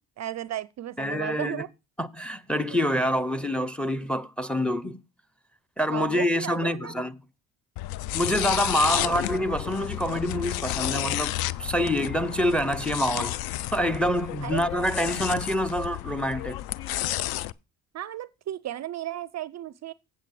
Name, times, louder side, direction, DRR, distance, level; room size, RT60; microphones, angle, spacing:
voice 1, 0.2-1.7 2.7-2.9 5.9-7.0 8.9-9.2 14.4-14.7 17.9-19.9, right 12 dB, 45° right, 0.4 m, -35 dB
voice 2, 1.0-1.6 2.0-5.0 5.8-7.2 8.1-11.3 11.6-13.4 13.7-16.6, equal, 5° left, 0.7 m, -26 dB
sound 1, 7.8-17.5, left 14 dB, 65° left, 0.5 m, -31 dB
8.2 x 7.5 x 4.7 m
supercardioid pair, 65°, 40 cm